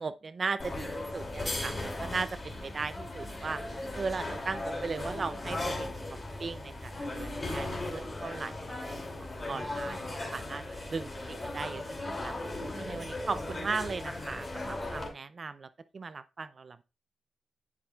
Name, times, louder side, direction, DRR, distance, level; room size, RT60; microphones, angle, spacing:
voice 1, 0.0-3.6 3.9-5.9 6.4-8.8 9.5-10.6 10.9-12.3 12.8-16.8, right 4 dB, 50° right, 0.5 m, -37 dB
sound 1, 0.6-15.1, left 2 dB, 30° left, 2.6 m, -37 dB
11.0 x 6.0 x 2.4 m
cardioid pair, 60°, 0 cm